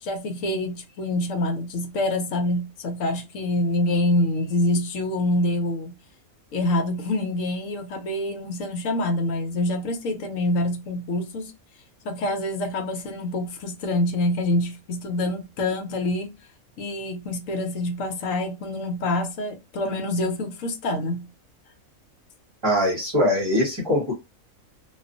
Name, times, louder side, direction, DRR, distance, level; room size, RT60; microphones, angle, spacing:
voice 1, 0.0-6.0 6.5-11.5 12.0-16.3 16.8-21.3, left 1 dB, 70° left, 1.1 m, -26 dB
voice 2, 22.6-24.1, left 1 dB, 20° right, 0.9 m, -22 dB
2.6 x 2.3 x 2.5 m
omnidirectional pair, 1.5 m